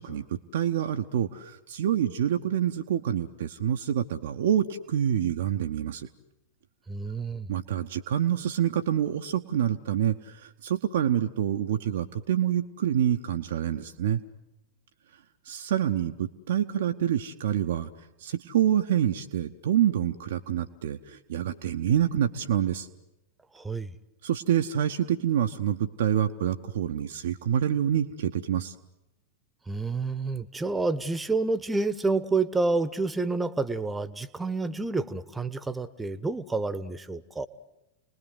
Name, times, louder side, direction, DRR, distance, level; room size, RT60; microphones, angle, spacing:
voice 1, 0.0-6.1 7.5-14.2 15.5-17.9 18.2-22.9 24.2-28.7, right 10 dB, 60° right, 6 dB, 0.9 m, -27 dB
voice 2, 6.9-7.5 23.5-23.9 29.7-37.5, right 3 dB, 10° right, 15 dB, 1.2 m, -29 dB
30.0 x 20.5 x 7.9 m, 0.96 s
figure-of-eight pair, 90°, 0 cm